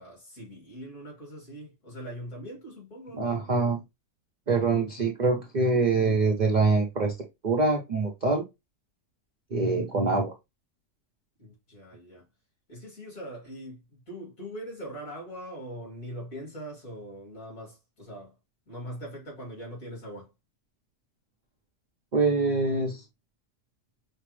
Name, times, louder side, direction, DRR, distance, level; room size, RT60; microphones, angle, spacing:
voice 1, 0.0-3.3 11.4-12.3 12.7-18.4 18.7-20.3, equal, 55° left, 3.1 m, -41 dB
voice 2, 3.2-3.8 4.5-7.2 7.4-8.4 9.5-10.3 22.1-23.0, right 3 dB, 60° right, 0.4 m, -24 dB
5.5 x 2.0 x 3.1 m
omnidirectional pair, 1.7 m